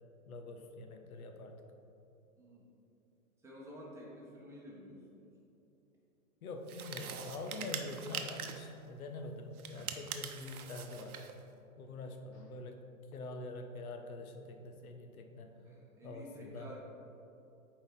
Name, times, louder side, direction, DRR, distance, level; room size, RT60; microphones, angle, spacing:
voice 1, 0.3-1.6 6.4-11.2 11.8-12.8 13.1-15.5 16.0-16.8, left 2 dB, 75° left, 5 dB, 0.9 m, -45 dB
voice 2, 2.4-2.7 3.4-5.3 15.6-16.8, equal, 5° right, -5 dB, 1.1 m, -51 dB
sound 1, 6.7-8.7 9.6-11.4, right 7 dB, 85° right, 0.8 m, -43 dB
Fart, 10.4-11.0 12.3-12.5, left 1 dB, 40° left, 1.5 m, -64 dB
7.5 x 4.7 x 3.9 m, 2.8 s
hypercardioid pair, 135°, 43 cm